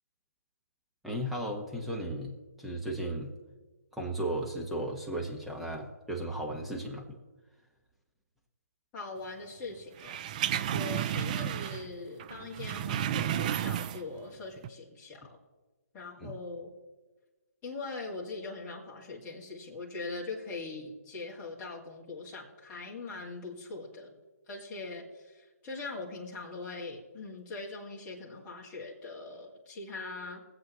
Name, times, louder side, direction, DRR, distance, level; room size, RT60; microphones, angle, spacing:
voice 1, 1.0-3.3 3.9-7.0 16.2-16.4, right 1 dB, ahead, -1 dB, 1.3 m, -35 dB
voice 2, 8.9-10.2 10.7-15.4 15.9-16.7 17.6-24.2 24.5-30.4, left 3 dB, 20° left, -4 dB, 2.3 m, -41 dB
sound 1, 10.0-11.9 12.2-14.2 14.6-14.7, right 10 dB, 25° right, 0.3 m, -32 dB
23.0 x 7.9 x 3.1 m, 1.2 s
hypercardioid pair, 150°, 9 cm